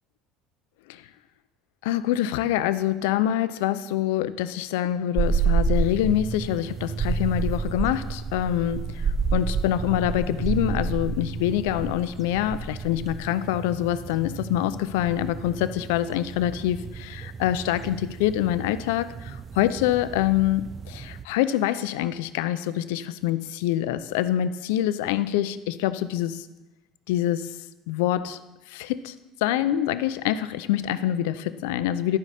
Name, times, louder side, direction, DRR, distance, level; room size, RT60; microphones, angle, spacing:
voice 1, 1.8-26.5 27.1-27.5 27.9-28.4 28.7-29.1 29.4-32.2, left 12 dB, 80° left, 14 dB, 0.4 m, -25 dB
sound 1, 5.2-21.3, right 5 dB, 35° right, 0.4 m, -30 dB
11.5 x 4.9 x 4.2 m, 1.0 s
hypercardioid pair, 75°, 0 cm